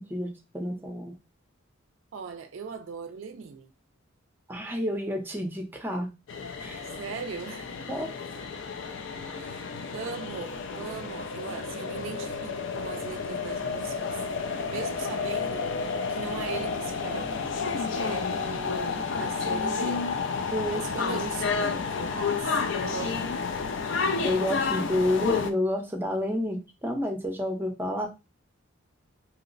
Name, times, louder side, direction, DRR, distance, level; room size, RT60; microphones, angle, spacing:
voice 1, 0.1-1.1 4.5-6.1 6.6-6.8 7.9-8.1 20.5-20.8 24.2-28.1, left 1 dB, 10° right, 0.6 m, -29 dB
voice 2, 2.1-3.7 6.8-7.7 9.3-14.2 14.7-15.7 16.1-20.2 20.7-23.3, right 6 dB, 65° right, 0.4 m, -39 dB
sound 1, 6.3-25.5, left 5 dB, 60° left, 0.4 m, -31 dB
2.8 x 2.1 x 3.8 m
head